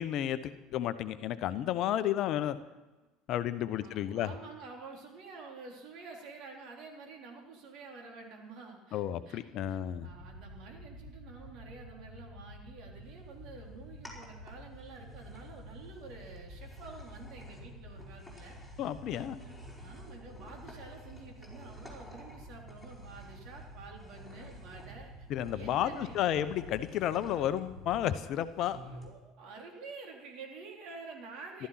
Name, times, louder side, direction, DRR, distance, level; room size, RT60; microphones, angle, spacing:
voice 1, 0.0-2.6 3.3-4.3 8.9-10.1 18.8-19.4 25.3-28.8 31.6-31.7, left 11 dB, 50° left, 13 dB, 0.8 m, -32 dB
voice 2, 3.7-18.6 19.4-25.3 25.5-26.5 28.7-31.7, right 4 dB, 50° right, 1 dB, 3.7 m, -49 dB
sound 1, 9.6-28.1, equal, 70° right, 2.4 m, -50 dB
sound 2, 13.0-29.1, left 1 dB, ahead, 4.6 m, -55 dB
14.5 x 12.5 x 5.9 m, 1.1 s
figure-of-eight pair, 70°, 0 cm